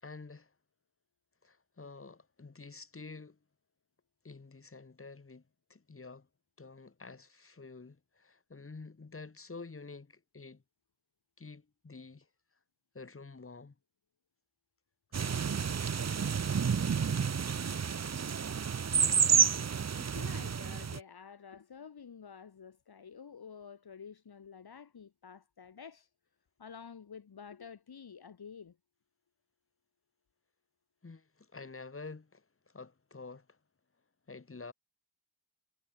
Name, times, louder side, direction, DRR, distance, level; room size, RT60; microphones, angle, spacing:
voice 1, 0.0-0.5 1.4-3.4 4.2-5.4 5.7-6.3 6.6-10.6 11.4-12.3 12.9-13.7 31.0-32.4 32.7-33.4 34.3-34.7, left 4 dB, 25° left, 6.7 m, -48 dB
sound 1, 15.1-21.0, right 6 dB, 35° right, 0.9 m, -30 dB
voice 2, 20.0-26.1 26.6-28.8, left 6 dB, 50° left, 4.2 m, -50 dB
wide cardioid pair, 180°, 49 cm